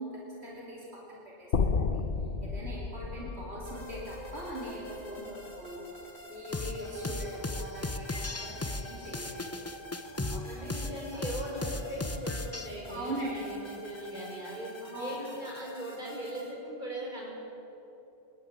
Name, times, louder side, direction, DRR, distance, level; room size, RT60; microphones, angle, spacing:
voice 1, 0.0-2.0 2.4-5.9 6.3-9.7 10.3-10.7 11.1-11.2 12.9-13.4 14.9-15.3, right 1 dB, 80° right, -5 dB, 3.4 m, -41 dB
sound 1, 1.5-5.7, left 5 dB, 55° left, 1.0 m, -33 dB
voice 2, 2.9-3.3 10.4-17.3, right 1 dB, 45° right, -3 dB, 5.4 m, -39 dB
sound 2, 3.7-16.5, left 1 dB, 85° left, 3.2 m, -48 dB
sound 3, 6.5-12.7, left 2 dB, 15° left, 0.7 m, -36 dB
25.5 x 12.5 x 9.0 m, 3.0 s
omnidirectional pair, 1.1 m